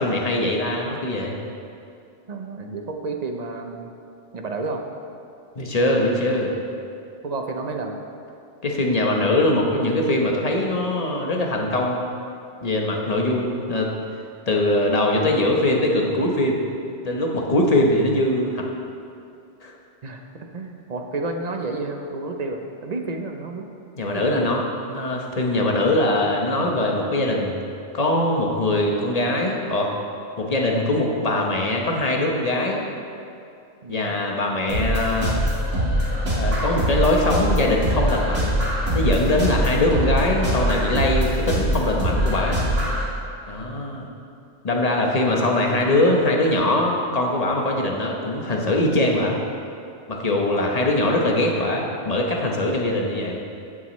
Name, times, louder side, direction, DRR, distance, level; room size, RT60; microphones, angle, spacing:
voice 1, 0.0-1.4 5.6-6.5 8.6-12.0 12.6-13.9 14.5-16.6 17.0-18.6 19.6-19.7 24.0-24.6 24.9-27.6 27.9-29.9 30.4-32.8 33.9-35.4 36.3-38.6 38.9-42.6 43.5-44.1 44.6-49.4 50.1-53.4, left 1 dB, 35° left, 0 dB, 1.1 m, -22 dB
voice 2, 2.3-3.9 4.3-4.8 7.2-8.0 13.1-13.4 20.0-23.7 24.0-24.5 33.8-34.2 45.3-45.6, right 3 dB, 40° right, 4 dB, 0.7 m, -31 dB
sound 1, 34.7-43.0, equal, 80° right, 2.4 m, -23 dB
14.5 x 7.5 x 3.2 m, 2.6 s
omnidirectional pair, 1.2 m